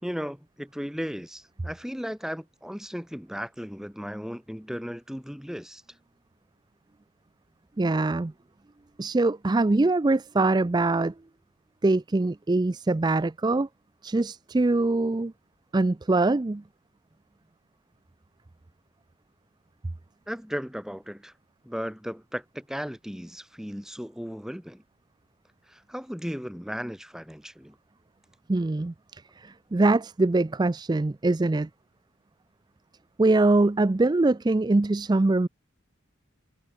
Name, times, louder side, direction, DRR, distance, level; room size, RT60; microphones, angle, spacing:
voice 1, 0.0-5.8 20.3-21.3 21.6-24.8 25.7-27.7, equal, ahead, 1.7 m, -36 dB
voice 2, 7.8-8.3 9.0-11.1 11.8-13.7 14.0-15.3 15.7-16.6 28.5-31.7 33.2-35.5, right 2 dB, 20° right, 0.4 m, -23 dB
head